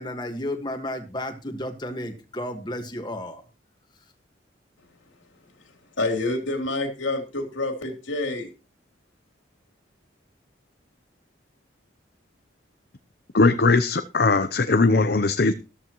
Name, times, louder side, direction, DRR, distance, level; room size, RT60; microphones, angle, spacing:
voice 1, 0.0-3.4, left 1 dB, 25° left, 5 dB, 1.6 m, -32 dB
voice 2, 6.0-8.5, left 2 dB, 90° left, 4 dB, 3.2 m, -27 dB
voice 3, 13.3-15.5, left 3 dB, 55° left, 10 dB, 0.7 m, -19 dB
13.5 x 13.0 x 3.0 m, 0.31 s
head